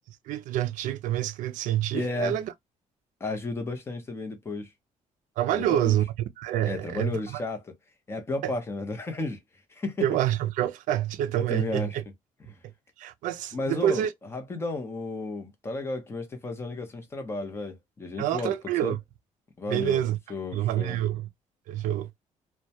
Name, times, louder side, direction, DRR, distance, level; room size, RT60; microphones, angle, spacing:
voice 1, 0.3-2.5 5.4-6.1 6.4-7.4 8.4-8.5 10.0-12.0 13.0-14.1 18.2-19.0 19.7-20.2 20.5-21.3 21.7-22.1, right 12 dB, 80° right, 0.4 m, -27 dB
voice 2, 1.9-2.4 3.2-4.7 5.5-6.0 6.6-7.7 8.1-9.4 9.7-10.1 11.5-12.0 13.5-14.0 14.3-18.5 18.8-19.0 19.6-20.0 20.3-21.0, left 2 dB, 20° left, 0.7 m, -33 dB
2.1 x 2.1 x 2.7 m
cardioid pair, 145°, 13 cm